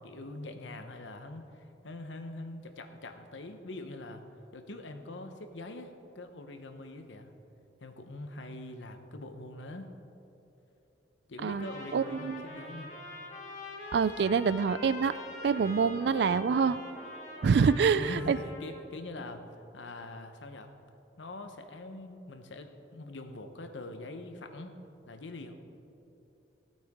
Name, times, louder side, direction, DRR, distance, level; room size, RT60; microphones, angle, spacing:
voice 1, 0.0-4.2 4.5-7.3 7.8-9.9 11.3-13.0 17.6-17.7 18.0-19.5 19.7-20.7 21.2-24.7 25.1-25.5, left 2 dB, 85° left, 7 dB, 0.9 m, -43 dB
Trumpet, 11.4-18.8, left 2 dB, 40° left, 1.6 m, -44 dB
voice 2, 11.9-12.4 13.9-15.1 15.4-16.8 17.4-18.4, right 5 dB, 65° right, 16 dB, 0.3 m, -26 dB
16.0 x 8.8 x 3.6 m, 2.9 s
head